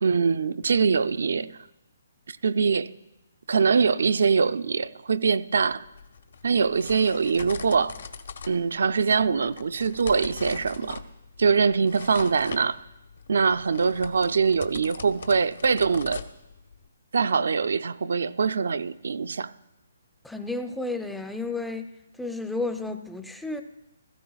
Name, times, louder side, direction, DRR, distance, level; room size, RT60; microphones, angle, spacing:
voice 1, 0.0-1.6 2.3-2.9 3.5-5.9 6.4-8.0 8.5-11.0 11.4-12.8 13.3-16.2 17.1-19.5, right 5 dB, 70° right, 0.4 m, -23 dB
sound 1, 5.7-16.9, left 5 dB, 70° left, 0.8 m, -42 dB
voice 2, 20.2-21.9 22.2-23.6, left 2 dB, ahead, 0.5 m, -32 dB
16.5 x 14.5 x 2.3 m
hypercardioid pair, 150°, 0 cm